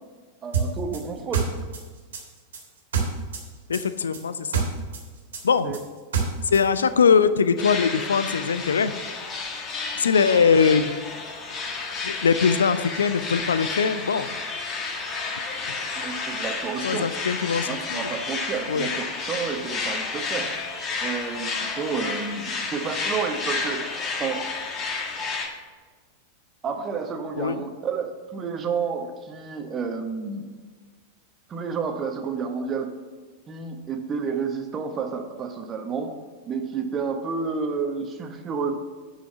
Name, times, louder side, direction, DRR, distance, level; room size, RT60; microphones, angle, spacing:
voice 1, 0.4-1.5 5.6-5.8 16.0-17.1 17.7-20.5 21.0-23.9 24.2-24.4 26.6-30.5 31.5-32.9 33.5-36.1 36.4-38.8, right 5 dB, 25° right, 5 dB, 1.1 m, -30 dB
sound 1, 0.5-3.5 3.7-6.6, right 6 dB, 65° right, 2.0 m, -27 dB
voice 2, 3.7-4.6 5.4-5.8 6.4-8.9 10.0-10.9 12.0-14.3 16.8-18.0 18.7-18.9 27.4-27.6, left 6 dB, 70° left, 13 dB, 0.4 m, -21 dB
sound 2, 7.6-25.5, left 4 dB, 30° left, 1.7 m, -31 dB
8.7 x 5.7 x 6.9 m, 1.5 s
figure-of-eight pair, 90°, 0 cm